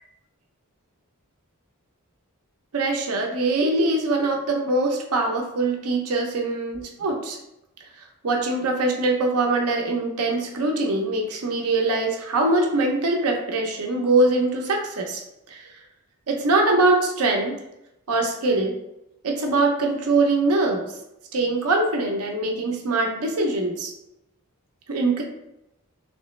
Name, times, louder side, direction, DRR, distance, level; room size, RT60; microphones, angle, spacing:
voice 1, 2.7-7.4 8.2-15.2 15.5-15.7 16.3-17.6 18.1-18.7 19.2-20.9 21.3-23.9 24.9-25.2, right 2 dB, 85° right, 1 dB, 0.7 m, -23 dB
3.2 x 3.0 x 3.1 m, 0.85 s
head